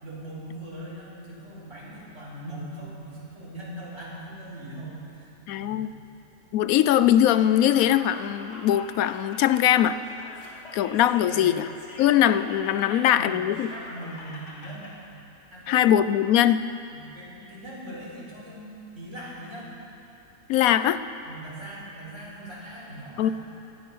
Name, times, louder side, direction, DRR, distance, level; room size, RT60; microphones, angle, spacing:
voice 1, 0.0-5.8 11.3-11.6 12.4-12.5 12.8-14.8 15.5-15.8 16.9-19.7 21.2-23.3, right 1 dB, 55° right, -7 dB, 4.7 m, -40 dB
voice 2, 5.5-5.9 6.5-10.0 10.7-11.7 12.0-13.7 15.7-16.6 20.5-21.0 23.2-23.3, left 11 dB, 75° left, 13 dB, 1.0 m, -21 dB
Laughter, 7.2-14.9, left 2 dB, 50° left, 2.2 m, -45 dB
18.5 x 12.0 x 5.5 m, 2.7 s
omnidirectional pair, 1.5 m